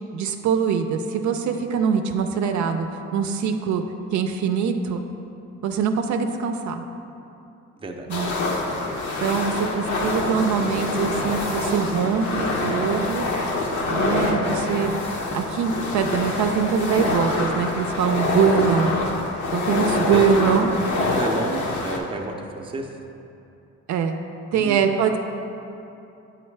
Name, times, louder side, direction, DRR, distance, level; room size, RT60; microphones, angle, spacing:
voice 1, 0.1-2.9 3.1-3.8 4.1-5.0 5.6-6.8 8.1-8.3 9.2-13.3 13.9-15.0 15.3-18.9 19.5-20.7 23.9-24.2 24.5-25.2, right 6 dB, 70° right, 6 dB, 0.5 m, -23 dB
voice 2, 7.8-8.1 9.2-9.6 20.1-20.3 21.0-22.9 24.5-24.8, right 2 dB, 20° right, 2 dB, 0.5 m, -31 dB
sound 1, 8.1-22.0, left 2 dB, 70° left, 0.9 m, -25 dB
7.8 x 3.9 x 3.2 m, 2.7 s
cardioid pair, 90°, 30 cm